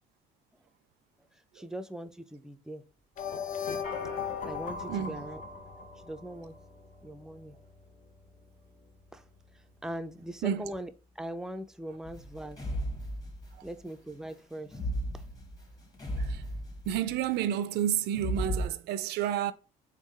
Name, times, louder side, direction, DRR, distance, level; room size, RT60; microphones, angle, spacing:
voice 1, 1.5-2.9 4.2-5.4 6.0-6.6 7.0-7.6 9.1-9.2 9.8-12.6 13.6-14.8 15.1-15.2, right 1 dB, 5° right, 0.4 m, -41 dB
sound 1, 3.2-6.2, left 7 dB, 50° left, 0.6 m, -37 dB
sound 2, 3.8-13.4, left 2 dB, 65° left, 1.9 m, -50 dB
sound 3, 12.0-13.7 14.7-17.2 18.1-18.7, equal, 25° left, 1.3 m, -35 dB
voice 2, 16.9-19.5, right 10 dB, 80° right, 0.4 m, -30 dB
3.6 x 3.5 x 3.2 m
cardioid pair, 110°, 17 cm